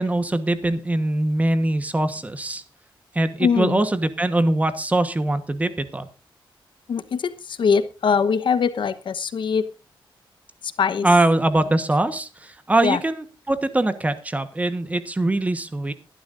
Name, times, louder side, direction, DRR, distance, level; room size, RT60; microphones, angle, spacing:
voice 1, 0.0-2.6 3.1-6.1 11.0-15.9, right 2 dB, 15° right, 11 dB, 1.2 m, -22 dB
voice 2, 3.4-3.8 6.9-9.6 10.8-11.1 12.8-13.0, left 6 dB, 65° left, 12 dB, 1.1 m, -22 dB
22.5 x 11.5 x 2.6 m, 0.30 s
wide cardioid pair, 160°, 9 cm